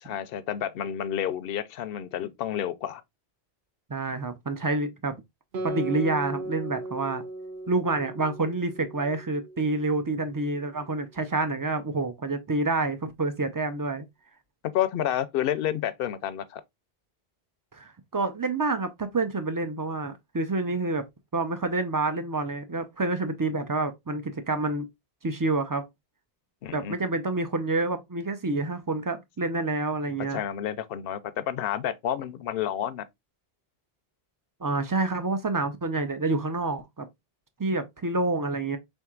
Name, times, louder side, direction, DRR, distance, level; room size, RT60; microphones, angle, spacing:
voice 1, 0.0-3.0 14.7-16.6 26.6-26.9 30.3-33.1, left 10 dB, 70° left, 0.7 m, -30 dB
voice 2, 3.9-5.1 5.6-7.2 7.7-14.0 17.7-21.0 21.3-24.9 25.2-25.9 26.7-30.4 34.6-37.1 37.6-38.8, right 3 dB, 30° right, 0.4 m, -28 dB
Guitar, 5.5-10.5, right 2 dB, 60° right, 0.9 m, -37 dB
4.5 x 3.7 x 2.3 m
omnidirectional pair, 1.1 m